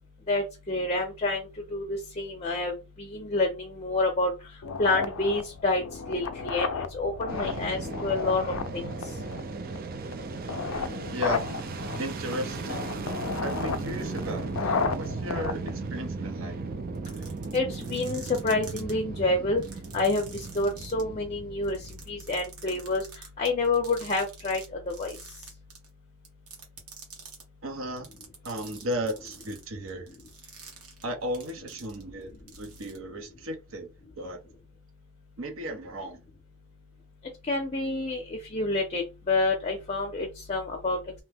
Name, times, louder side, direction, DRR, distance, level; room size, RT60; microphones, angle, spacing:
voice 1, 0.3-2.7 3.1-4.3 4.8-5.8 6.1-8.9 17.5-19.6 19.9-21.8 22.1-23.0 23.4-25.2 37.5-41.0, left 2 dB, 30° left, 0.6 m, -28 dB
sound 1, 4.6-16.6, left 5 dB, 70° left, 0.4 m, -34 dB
Fixed-wing aircraft airplane, 7.3-22.5, right 4 dB, 40° right, 0.4 m, -36 dB
voice 2, 11.1-11.4 12.0-12.9 13.4-16.6 27.6-28.1 28.4-30.1 31.0-33.9 34.2-34.4 35.4-36.2, equal, 65° right, 0.8 m, -35 dB
sound 2, 16.9-18.9 19.6-21.0 21.6-24.6 24.9-25.9 26.2-27.4 28.0-32.2 32.5-33.0, right 6 dB, 85° right, 1.1 m, -47 dB
2.9 x 2.1 x 3.4 m
head